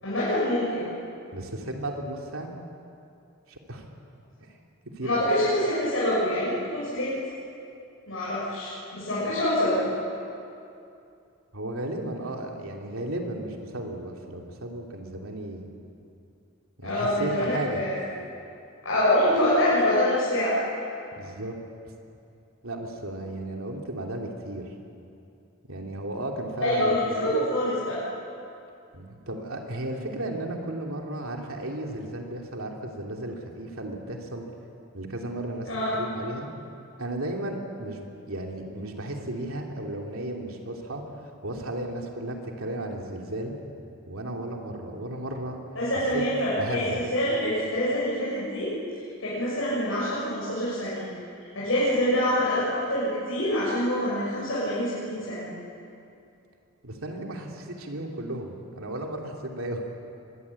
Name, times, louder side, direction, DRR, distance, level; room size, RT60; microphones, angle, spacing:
voice 1, 0.0-0.8 5.0-7.1 8.1-9.9 16.8-18.0 18.8-20.5 26.6-28.0 35.7-35.9 45.8-48.7 49.2-51.1 51.6-55.5, left 1 dB, 70° left, -9 dB, 7.1 m, -25 dB
voice 2, 1.3-2.5 3.5-3.9 4.4-4.5 4.8-5.3 11.5-15.7 16.8-17.8 21.1-21.6 22.6-24.7 25.6-27.4 28.9-34.4 34.9-36.5 37.0-43.5 44.1-45.6 46.1-46.2 46.5-47.0 56.8-59.8, right 1 dB, 85° right, 1 dB, 3.1 m, -34 dB
24.0 x 21.0 x 8.6 m, 2.6 s
head